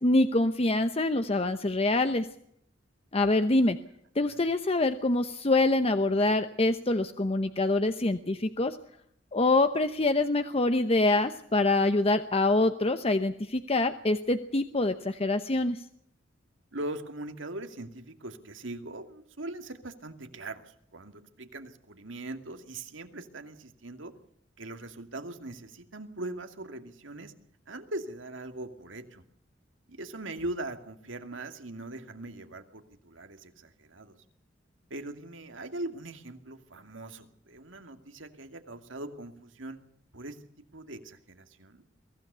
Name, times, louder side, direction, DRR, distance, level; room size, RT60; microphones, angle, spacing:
voice 1, 0.0-2.3 3.1-3.8 4.2-8.8 9.3-15.8, left 2 dB, 30° left, 9 dB, 0.9 m, -25 dB
voice 2, 16.7-24.1 24.6-27.3 27.7-29.2 29.9-34.2 34.9-39.8 40.1-40.4 40.7-41.8, right 2 dB, 90° right, 7 dB, 2.4 m, -41 dB
23.5 x 16.0 x 6.9 m, 0.70 s
head